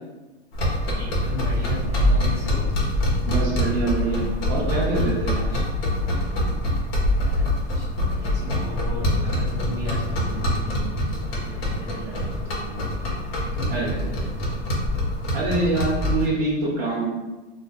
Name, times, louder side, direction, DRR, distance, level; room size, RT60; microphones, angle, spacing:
sound 1, 0.5-16.3, left 1 dB, 65° left, 1.1 m, -25 dB
voice 1, 1.0-2.7 5.3-5.6 7.1-7.5 7.7-13.1 13.5-14.6, left 1 dB, 10° right, -7 dB, 0.7 m, -36 dB
voice 2, 3.3-5.4 13.7-14.1 15.3-17.1, right 2 dB, 45° right, -4 dB, 0.9 m, -25 dB
2.5 x 2.4 x 3.9 m, 1.1 s
supercardioid pair, 165°, 32 cm